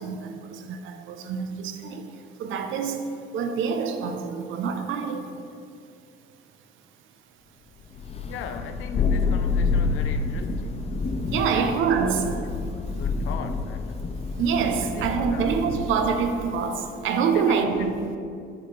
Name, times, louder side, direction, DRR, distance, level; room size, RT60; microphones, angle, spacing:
voice 1, 0.0-5.4 11.3-12.4 14.3-17.9, right 6 dB, 85° right, 0.5 m, -26 dB
Thunder, 8.0-16.4, left 4 dB, 30° left, 0.4 m, -28 dB
voice 2, 8.2-10.9 11.4-12.1 12.9-14.0 14.8-15.6 17.3-17.9, left 6 dB, 85° left, 0.4 m, -39 dB
5.9 x 5.7 x 3.2 m
cardioid pair, 90°, 20 cm